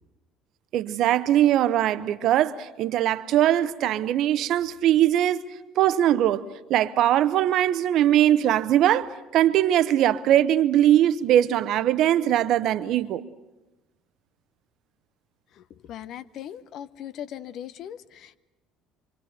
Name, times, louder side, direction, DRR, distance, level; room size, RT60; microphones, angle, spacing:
voice 1, 0.7-5.5 5.8-6.4 6.7-13.2, right 12 dB, 60° right, 0.9 m, -21 dB
voice 2, 15.6-18.4, left 10 dB, 60° left, 0.8 m, -39 dB
26.5 x 25.5 x 6.6 m
hypercardioid pair, 65°, 0 cm